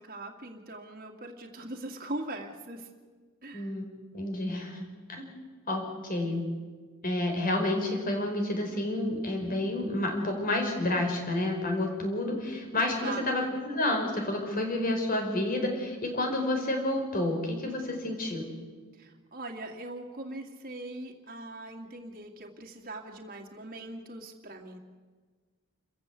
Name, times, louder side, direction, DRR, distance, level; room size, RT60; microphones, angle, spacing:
voice 1, 0.0-2.9 3.4-3.7 12.9-13.5 19.0-24.8, right 2 dB, 45° right, 2 dB, 2.3 m, -41 dB
voice 2, 3.5-3.9 4.1-5.4 5.7-6.4 7.0-18.4, left 1 dB, 45° left, 3 dB, 4.9 m, -30 dB
28.0 x 15.0 x 8.3 m, 1.4 s
head